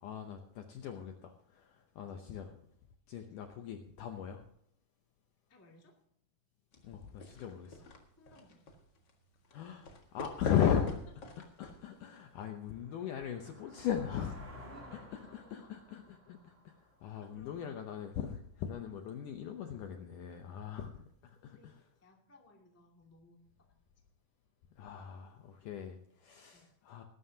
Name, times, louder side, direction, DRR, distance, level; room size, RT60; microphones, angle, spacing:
voice 1, 0.0-2.5 3.1-4.4 6.8-7.9 9.5-11.0 11.6-14.5 14.9-21.8 24.8-27.0, left 8 dB, 75° left, 5 dB, 2.0 m, -38 dB
voice 2, 2.1-2.4 5.5-5.9 8.2-8.6 14.7-15.7 17.2-17.8 21.4-23.8 26.5-26.7, left 1 dB, 10° left, 0 dB, 1.0 m, -62 dB
sound 1, 6.7-12.3, left 1 dB, 50° left, 1.3 m, -47 dB
sound 2, 11.9-17.9, equal, 25° right, 1.8 m, -55 dB
20.5 x 11.5 x 2.8 m, 0.71 s
omnidirectional pair, 4.6 m